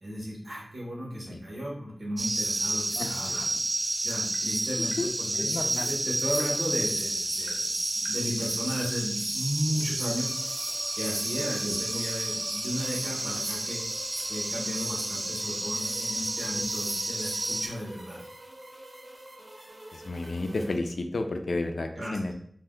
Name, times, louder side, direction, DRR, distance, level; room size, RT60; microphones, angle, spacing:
voice 1, 0.0-3.6 4.0-5.5 5.9-10.3 10.9-13.8 14.3-18.2 22.0-22.3, equal, 85° right, -4 dB, 1.1 m, -34 dB
sound 1, 2.2-17.7, right 1 dB, 30° right, 0.3 m, -31 dB
voice 2, 3.0-3.5 5.0-5.1 5.3-5.9 11.7-11.8 19.9-22.3, left 2 dB, 80° left, 6 dB, 0.3 m, -32 dB
Tap, 4.3-4.5 4.9-5.1 5.8-6.0 6.4-6.5 7.5-7.7 8.1-8.2 9.2-9.3 9.8-9.9, left 1 dB, 25° left, 0.7 m, -47 dB
sound 2, 10.1-20.8, right 1 dB, 55° right, 0.8 m, -47 dB
2.5 x 2.2 x 3.6 m, 0.65 s
wide cardioid pair, 60°, 0 cm